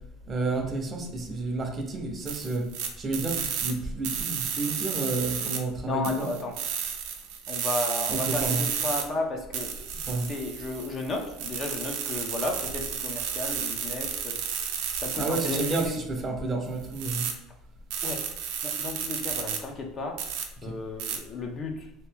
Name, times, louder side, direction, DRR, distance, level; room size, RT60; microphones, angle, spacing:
voice 1, 0.3-2.7 3.0-6.3 8.1-8.6 10.1-10.3 15.2-17.3 20.6-20.7, right 2 dB, 25° right, 3 dB, 0.6 m, -30 dB
sound 1, 2.3-3.7 4.0-5.6 6.0-9.0 9.5-16.0 16.8-17.3 17.9-19.6 20.2-20.4 21.0-21.2, right 8 dB, 70° right, 0.5 m, -32 dB
voice 2, 5.8-6.6 7.5-9.8 10.1-14.4 14.7-16.0 18.0-18.3 18.6-20.3 20.6-21.9, left 3 dB, 30° left, 3 dB, 0.5 m, -33 dB
2.8 x 2.5 x 3.4 m, 0.86 s
cardioid pair, 140°, 0 cm